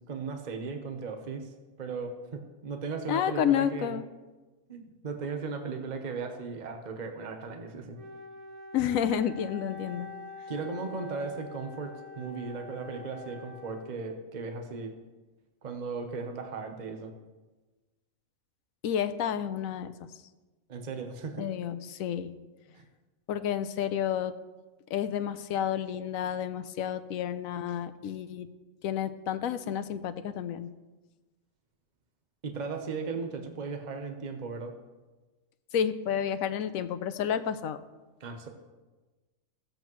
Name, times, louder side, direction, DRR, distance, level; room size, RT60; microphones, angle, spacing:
voice 1, 0.1-1.5 1.8-4.0 4.7-8.0 10.5-14.9 15.6-17.1 20.7-21.5 22.7-22.8 32.4-34.7 38.2-38.5, right 4 dB, 35° right, 5 dB, 0.9 m, -37 dB
voice 2, 3.1-4.0 8.7-10.1 18.8-19.9 21.4-22.4 23.3-24.3 24.9-28.5 28.8-30.7 35.7-37.8, left 9 dB, 85° left, 11 dB, 1.0 m, -30 dB
Wind instrument woodwind instrument, 7.9-14.3, left 4 dB, 80° right, 1.7 m, -45 dB
15.5 x 7.8 x 3.0 m, 1.2 s
omnidirectional pair, 1.4 m